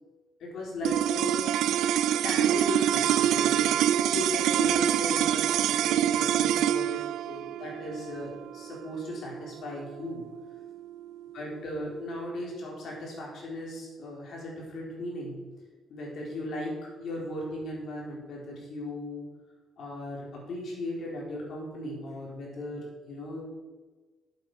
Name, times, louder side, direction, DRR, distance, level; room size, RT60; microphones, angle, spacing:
voice 1, 0.4-1.4 2.2-3.7 4.0-10.2 11.3-15.4 15.9-19.3 19.8-23.5, left 1 dB, 60° left, -3 dB, 3.9 m, -37 dB
sound 1, 0.8-11.3, right 10 dB, 85° right, 0.4 m, -26 dB
11.0 x 8.1 x 4.9 m, 1.3 s
cardioid pair, 145°, 0 cm